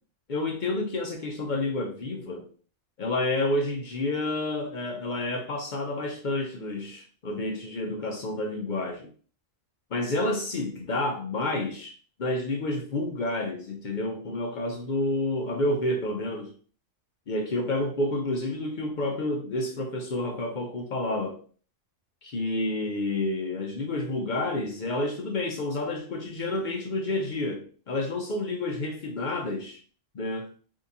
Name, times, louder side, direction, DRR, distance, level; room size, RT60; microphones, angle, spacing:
voice 1, 0.3-2.5 3.0-9.1 9.9-16.5 17.3-21.4 22.2-29.8 30.1-30.5, left 2 dB, 60° left, 0.5 m, -29 dB
3.5 x 2.8 x 2.7 m
omnidirectional pair, 1.4 m